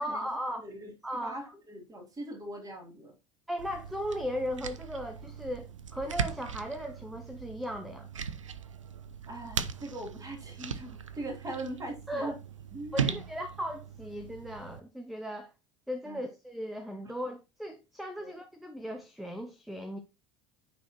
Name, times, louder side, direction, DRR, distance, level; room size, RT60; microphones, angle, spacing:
voice 1, 0.0-0.7 1.0-1.5 3.5-8.1 12.1-12.3 12.9-15.5 15.9-20.0, equal, ahead, 0.8 m, -37 dB
voice 2, 1.2-3.1 9.3-12.3 12.7-13.1 16.0-16.2 18.2-18.3, right 1 dB, 25° right, 3.1 m, -41 dB
sound 1, 3.6-14.8, right 7 dB, 90° right, 0.5 m, -39 dB
9.6 x 4.2 x 2.9 m
hypercardioid pair, 70°, 16 cm